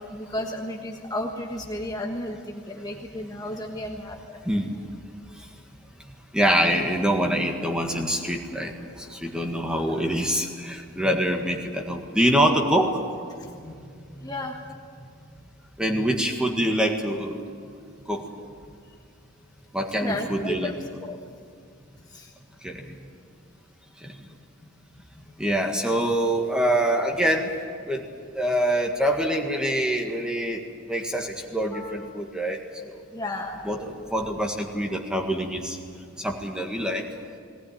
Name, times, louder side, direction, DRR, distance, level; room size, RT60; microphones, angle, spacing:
voice 1, 0.1-4.4 9.9-10.0 13.4-13.7 14.2-14.8 20.0-21.2 22.1-22.3 24.3-24.4 31.7-32.0 33.1-33.6, left 1 dB, 20° left, 1 dB, 1.4 m, -33 dB
voice 2, 6.3-12.9 15.8-17.4 18.1-18.2 19.7-20.7 22.6-22.9 24.0-24.1 25.4-27.5 27.9-28.0 28.3-30.6 30.9-32.9 33.6-35.8 36.2-37.0, equal, 5° right, 2 dB, 1.7 m, -25 dB
19.0 x 18.5 x 9.4 m, 2.3 s
head